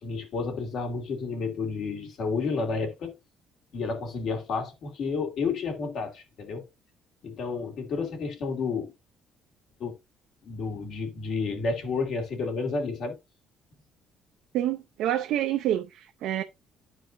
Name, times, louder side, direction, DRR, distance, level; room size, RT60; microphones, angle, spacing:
voice 1, 0.0-3.1 3.7-6.6 7.2-8.9 9.8-9.9 10.4-13.2, left 4 dB, 65° left, 2.4 m, -31 dB
voice 2, 14.5-16.4, right 12 dB, 80° right, 0.5 m, -27 dB
12.0 x 4.6 x 2.6 m
cardioid pair, 110°, 0 cm